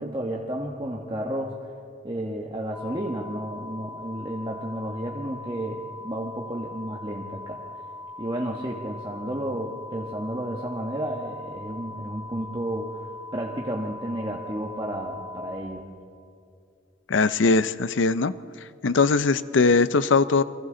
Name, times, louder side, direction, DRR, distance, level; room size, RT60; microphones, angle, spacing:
voice 1, 0.0-1.5 2.0-7.6 8.2-13.0 13.3-15.8, right 1 dB, 25° right, -1 dB, 1.2 m, -32 dB
sound 1, 2.7-15.6, left 2 dB, 10° left, 1.4 m, -41 dB
voice 2, 17.1-18.3 18.8-20.4, left 4 dB, 85° left, 15 dB, 0.6 m, -20 dB
29.5 x 23.5 x 3.9 m, 2.4 s
head